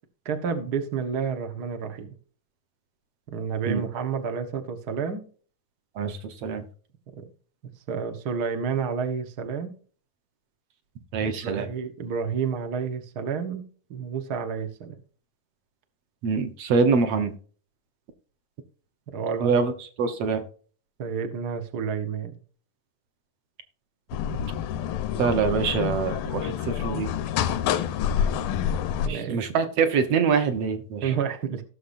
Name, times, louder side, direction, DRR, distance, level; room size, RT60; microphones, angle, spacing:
voice 1, 0.2-2.1 3.3-5.2 7.2-7.3 7.9-9.7 11.2-13.6 13.9-14.9 19.1-19.5 21.0-22.4 29.0-29.4 31.0-31.6, right 6 dB, 85° right, 7 dB, 0.8 m, -30 dB
voice 2, 6.0-6.6 11.1-11.7 16.2-17.4 19.4-20.4 25.2-27.1 29.1-31.1, right 5 dB, 65° right, 8 dB, 1.7 m, -25 dB
sound 1, 24.1-29.1, left 9 dB, 90° left, 2.5 m, -27 dB
17.0 x 6.7 x 2.6 m, 0.42 s
omnidirectional pair, 3.8 m